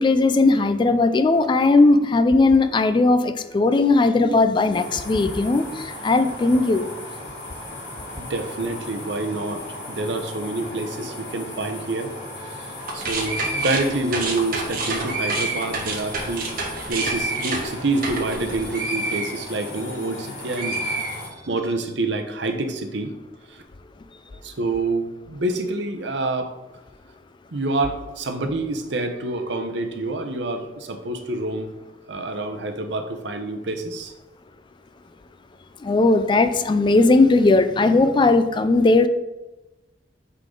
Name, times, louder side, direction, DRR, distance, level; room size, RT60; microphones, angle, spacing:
voice 1, 0.0-6.9 35.8-39.1, left 3 dB, 25° left, 11 dB, 0.3 m, -18 dB
sound 1, 4.7-21.3, left 1 dB, 80° left, 2.0 m, -37 dB
voice 2, 8.2-12.1 12.5-20.8 21.2-23.1 23.5-23.6 24.4-26.5 27.5-31.7 32.1-34.1, right 2 dB, 75° right, 6 dB, 0.8 m, -27 dB
sound 2, 12.8-20.2 20.5-21.7, right 2 dB, 50° right, 1.3 m, -28 dB
8.1 x 3.8 x 3.8 m, 1.1 s
head